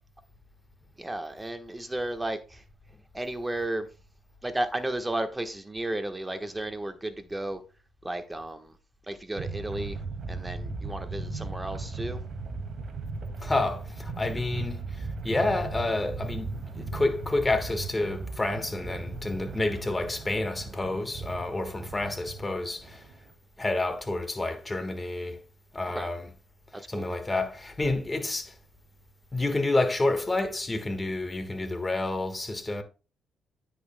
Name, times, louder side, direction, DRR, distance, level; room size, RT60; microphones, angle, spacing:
voice 1, 1.0-2.6 3.1-3.9 4.4-7.6 8.0-8.7 9.1-10.0 10.3-12.2 25.9-26.1 26.9-27.1, right 1 dB, 15° right, 1.2 m, -33 dB
sound 1, 9.4-23.3, right 3 dB, 55° right, 2.1 m, -37 dB
voice 2, 13.4-23.0 23.6-25.4 25.7-26.3 26.9-28.5 29.3-32.8, left 2 dB, 20° left, 1.5 m, -29 dB
9.6 x 8.4 x 2.2 m
cardioid pair, 90°, 0 cm